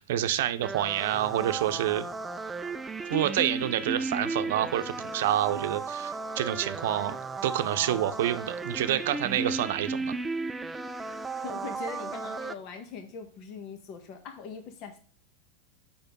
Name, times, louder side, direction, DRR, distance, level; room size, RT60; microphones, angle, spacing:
voice 1, 0.0-2.1 3.1-7.2 7.4-10.1, right 12 dB, 75° right, 10 dB, 0.7 m, -28 dB
sound 1, 0.6-12.5, right 3 dB, 10° right, 0.4 m, -35 dB
voice 2, 11.4-15.0, left 6 dB, 50° left, 6 dB, 1.2 m, -41 dB
6.8 x 5.4 x 5.3 m, 0.43 s
supercardioid pair, 130°, 0 cm